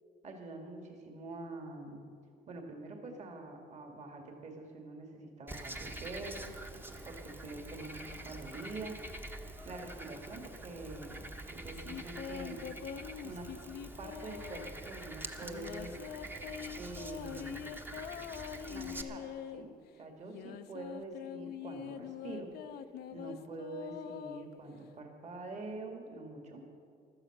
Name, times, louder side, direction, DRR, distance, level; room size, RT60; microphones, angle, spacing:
voice 1, 0.2-2.0 2.5-6.5 7.0-8.9 9.6-11.1 11.5-12.6 13.2-13.5 14.0-16.0 16.8-17.6 18.7-19.2 19.5-19.7 20.0-22.5 23.1-26.6, right 2 dB, 45° right, 3 dB, 2.1 m, -45 dB
Frog, 5.5-19.0, right 1 dB, 10° right, 1.0 m, -46 dB
sound 1, 11.7-14.8 15.4-19.6 20.2-24.9, left 9 dB, 70° left, 0.7 m, -44 dB
15.5 x 12.5 x 6.0 m, 2.5 s
cardioid pair, 110°, 17 cm